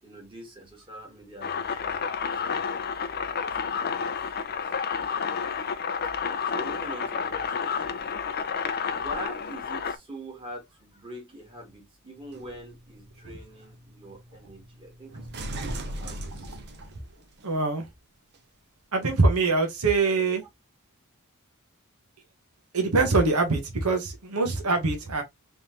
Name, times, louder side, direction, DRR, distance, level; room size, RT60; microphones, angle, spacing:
voice 1, 0.0-2.8 3.3-4.6 6.2-8.0 8.9-16.6, right 1 dB, 25° right, 1.9 m, -44 dB
sound 1, 1.4-10.0, left 6 dB, 45° left, 0.5 m, -30 dB
sound 2, 12.2-17.5 18.3-18.4, right 1 dB, 50° right, 0.7 m, -40 dB
voice 2, 17.4-17.9 18.9-20.4 22.7-25.2, right 3 dB, 85° right, 1.1 m, -23 dB
3.7 x 3.2 x 2.8 m
head